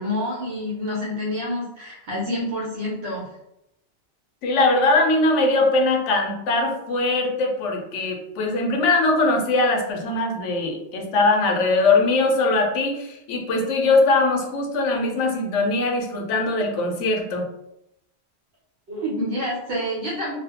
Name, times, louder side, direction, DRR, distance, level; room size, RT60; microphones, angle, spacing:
voice 1, 0.0-3.2 18.9-20.4, left 1 dB, 60° right, -5 dB, 0.9 m, -28 dB
voice 2, 4.4-17.4, left 2 dB, 85° left, 2 dB, 0.9 m, -21 dB
2.4 x 2.1 x 2.8 m, 0.83 s
omnidirectional pair, 1.2 m